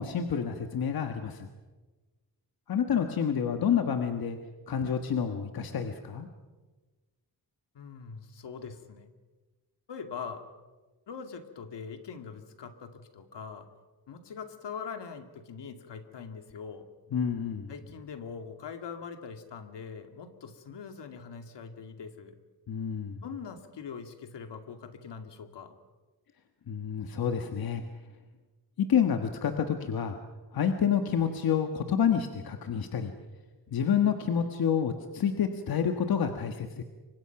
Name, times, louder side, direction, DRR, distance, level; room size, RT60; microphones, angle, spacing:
voice 1, 0.0-1.5 2.7-4.4 4.7-6.3 17.1-17.7 22.7-23.2 26.7-27.8 28.8-30.2 30.5-33.1 33.7-36.8, left 7 dB, 55° left, 6 dB, 1.5 m, -28 dB
voice 2, 2.9-3.3 7.7-9.1 9.9-10.5 11.1-13.7 14.1-16.9 17.7-22.3 23.2-25.7, left 6 dB, 75° left, 7 dB, 2.4 m, -42 dB
29.0 x 24.5 x 5.9 m, 1.3 s
wide cardioid pair, 175°, 42 cm